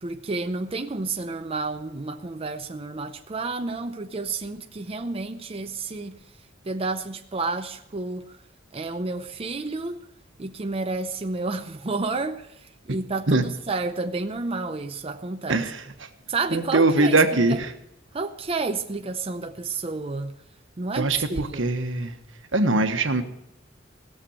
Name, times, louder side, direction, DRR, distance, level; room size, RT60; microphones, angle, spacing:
voice 1, 0.0-6.2 6.6-8.3 8.7-10.0 10.4-15.7 16.3-17.2 17.5-17.6 18.1-20.4 20.8-21.7, right 3 dB, 30° right, 0.6 m, -30 dB
voice 2, 15.5-15.8 16.5-17.7 20.9-22.2 22.5-23.2, right 2 dB, 75° right, 1.3 m, -22 dB
17.5 x 6.9 x 8.6 m
head